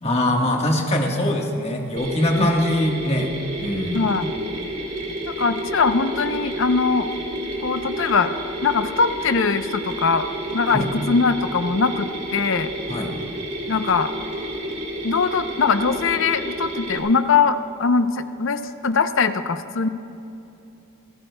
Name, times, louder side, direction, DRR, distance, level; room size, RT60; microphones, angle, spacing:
voice 1, 0.0-3.3 3.6-4.0 10.7-10.9 12.9-13.1, left 1 dB, 30° left, 1 dB, 1.4 m, -22 dB
Mechanisms, 2.0-17.0, right 1 dB, 35° right, 2.5 m, -30 dB
voice 2, 3.9-4.3 5.4-7.1 7.6-8.3 8.6-10.3 10.5-12.7 13.7-14.1 15.0-19.9, left 5 dB, 60° left, 10 dB, 0.6 m, -21 dB
26.0 x 14.5 x 2.2 m, 2.9 s
head